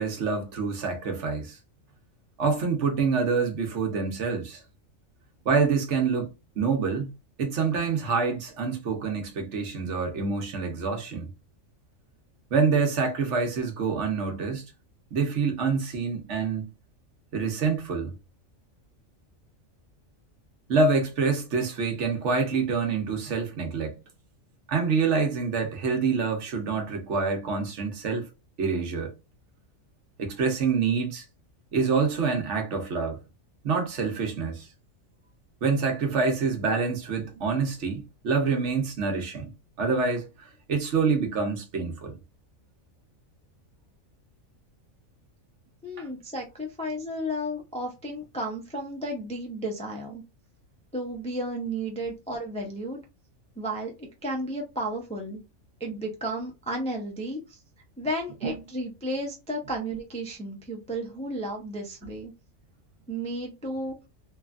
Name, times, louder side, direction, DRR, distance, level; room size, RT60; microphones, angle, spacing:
voice 1, 0.0-1.6 2.4-4.6 5.4-7.1 7.4-11.3 12.5-14.6 15.1-16.7 17.3-18.1 20.7-24.0 24.7-28.3 28.6-29.1 30.2-31.2 31.7-33.2 33.6-34.7 35.6-39.5 39.8-42.2 46.0-46.1 58.4-58.6, right 5 dB, 65° right, 1.1 m, -26 dB
voice 2, 45.8-50.2 50.9-53.0 53.6-55.4 55.8-57.6 58.0-62.3 63.1-64.0, right 1 dB, 10° left, 0.4 m, -33 dB
3.1 x 2.3 x 2.4 m
omnidirectional pair, 1.4 m